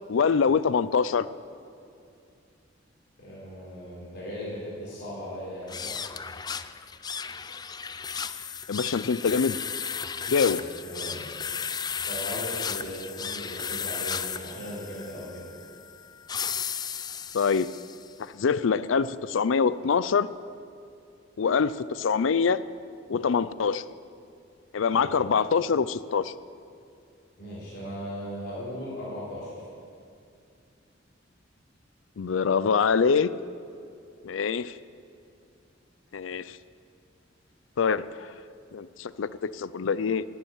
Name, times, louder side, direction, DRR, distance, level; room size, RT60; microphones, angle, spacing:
voice 1, 0.1-1.3 8.7-9.6 10.3-10.6 17.3-17.7 18.2-20.3 21.4-22.6 23.1-23.9 24.7-26.3 32.2-33.3 34.2-34.7 36.1-36.5 37.8-38.1 38.7-40.2, left 5 dB, 85° left, 17 dB, 0.5 m, -24 dB
voice 2, 3.2-6.0 10.4-10.5 10.8-11.2 12.0-15.4 24.9-25.0 27.4-29.5, equal, 60° left, -8 dB, 4.3 m, -38 dB
sound 1, 5.6-18.1, left 7 dB, 20° left, 0.4 m, -35 dB
11.5 x 10.5 x 9.3 m, 2.5 s
head